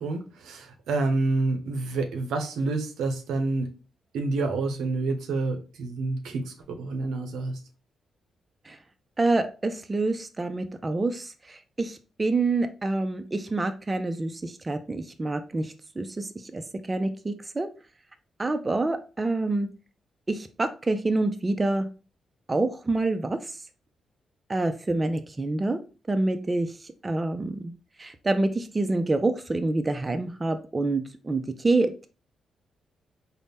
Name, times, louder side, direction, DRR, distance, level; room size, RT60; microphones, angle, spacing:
voice 1, 0.0-3.7 4.1-7.6, right 3 dB, 85° right, 0.6 m, -28 dB
voice 2, 9.2-16.6 16.9-17.7 18.4-19.7 20.3-21.9 22.5-23.6 24.5-25.8 26.1-26.7 27.0-27.7 28.0-32.1, right 2 dB, 25° right, 0.4 m, -27 dB
4.0 x 2.0 x 3.4 m
cardioid pair, 70°, 0 cm